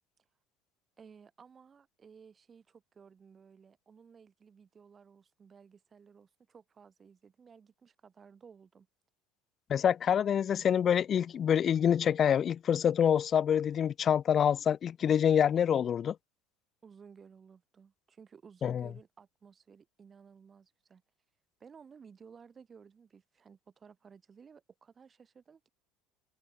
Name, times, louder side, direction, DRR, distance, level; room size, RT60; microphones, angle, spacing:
voice 1, 1.0-8.9 16.8-21.0 21.6-25.7, right 6 dB, 30° right, 6.1 m, -56 dB
voice 2, 9.7-16.2 18.6-18.9, left 8 dB, 40° left, 0.4 m, -26 dB
hypercardioid pair, 65°, 0 cm